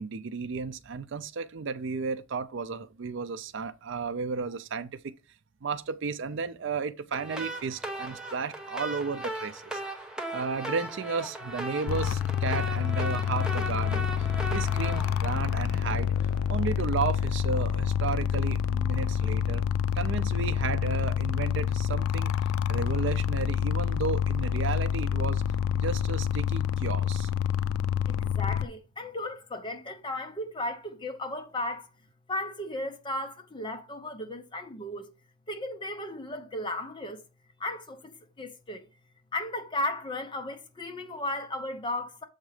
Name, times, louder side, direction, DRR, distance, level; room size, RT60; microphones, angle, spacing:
voice 1, 0.0-5.0 5.6-9.8 10.3-14.1 14.5-16.1 16.5-19.6 19.9-22.3 22.7-25.4 25.7-27.3, right 5 dB, 60° right, 0.4 m, -33 dB
sound 1, 7.1-16.2, right 1 dB, 5° right, 0.8 m, -38 dB
sound 2, 11.9-28.6, left 8 dB, 85° left, 0.3 m, -27 dB
voice 2, 28.1-31.9 32.3-35.1 35.5-37.2 37.6-38.9 39.3-42.2, left 1 dB, 25° left, 0.8 m, -35 dB
7.2 x 3.9 x 4.8 m
head